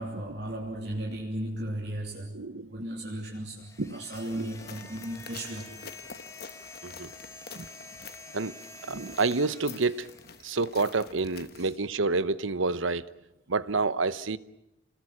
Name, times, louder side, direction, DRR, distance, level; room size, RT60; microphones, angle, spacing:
voice 1, 0.0-2.4 2.7-5.7 7.8-7.9 11.5-11.7, right 1 dB, 55° right, 3.3 m, -36 dB
voice 2, 2.3-2.7 3.8-4.0 4.3-4.4 6.8-7.1 7.5-7.7 8.3-8.5 8.8-10.1 10.4-13.0 13.5-14.4, right 3 dB, 90° right, 1.0 m, -28 dB
sound 1, 3.6-11.0, left 2 dB, 15° left, 1.7 m, -48 dB
sound 2, 4.1-11.8, left 6 dB, 50° left, 1.3 m, -48 dB
29.0 x 20.5 x 8.7 m
head